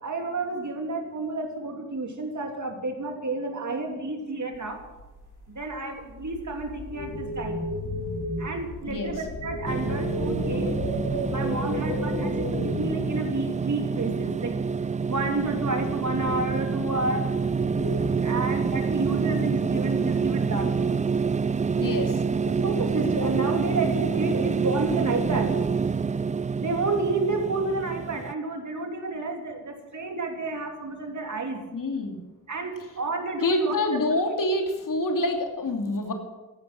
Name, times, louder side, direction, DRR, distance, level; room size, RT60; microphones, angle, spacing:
voice 1, 0.0-4.8 5.5-7.6 8.4-10.8 11.3-14.5 15.1-17.3 18.2-21.0 22.5-25.6 26.6-31.6 32.5-33.8, right 3 dB, 50° right, 3 dB, 3.0 m, -30 dB
sound 1, 4.5-14.6 15.3-18.5, left 2 dB, 80° left, 3.2 m, -34 dB
sound 2, 9.7-28.3, right 5 dB, 20° right, 0.4 m, -27 dB
voice 2, 21.8-22.2 31.7-32.2 33.4-36.1, left 1 dB, 55° left, 3 dB, 2.8 m, -26 dB
14.5 x 11.5 x 6.2 m, 1.1 s
supercardioid pair, 50°, 38 cm